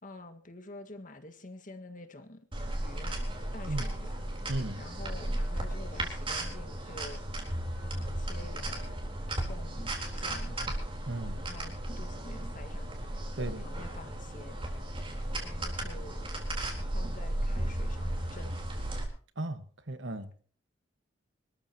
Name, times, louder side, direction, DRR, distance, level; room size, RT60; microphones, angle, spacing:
voice 1, 0.0-2.4 2.8-4.2 4.8-7.2 7.8-9.0 9.3-10.6 11.2-12.9 13.4-14.6 15.4-16.3 16.9-18.6, left 2 dB, 45° left, 6 dB, 1.8 m, -48 dB
sound 1, 2.5-19.0, right 1 dB, 30° right, 3.9 m, -35 dB
voice 2, 4.5-4.8 11.1-11.4 13.4-13.7 19.4-20.4, right 2 dB, 75° right, 10 dB, 1.6 m, -36 dB
25.0 x 13.5 x 3.0 m, 0.42 s
head